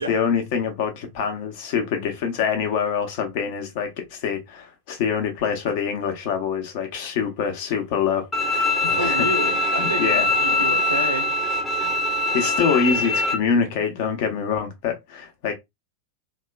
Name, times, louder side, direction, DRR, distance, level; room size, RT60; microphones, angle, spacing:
voice 1, 0.0-9.3 9.8-10.3 11.8-11.9 12.3-15.5, left 6 dB, 50° left, 0.8 m, -25 dB
Bowed string instrument, 8.3-13.3, left 2 dB, 10° left, 0.7 m, -22 dB
voice 2, 9.0-11.3, right 2 dB, 80° right, 0.7 m, -29 dB
2.9 x 2.1 x 2.2 m
figure-of-eight pair, 90°, 0 cm